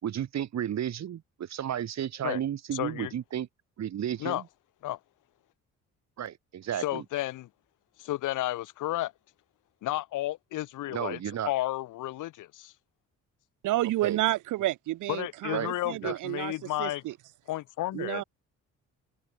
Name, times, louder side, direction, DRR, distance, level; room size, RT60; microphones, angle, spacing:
voice 1, 0.0-3.5 3.8-4.4 6.2-7.0 10.9-11.5 13.8-14.2 15.5-16.2, right 10 dB, 60° right, 2.8 m, -33 dB
voice 2, 2.7-3.1 4.2-4.4 4.8-5.0 6.8-7.5 8.0-9.1 9.8-11.2 11.4-12.7 15.1-17.0 17.5-18.2, left 15 dB, 85° left, 3.0 m, -32 dB
voice 3, 13.6-16.5 16.8-17.1 17.9-18.2, right 16 dB, 85° right, 1.8 m, -30 dB
open air
cardioid pair, 90°, 30 cm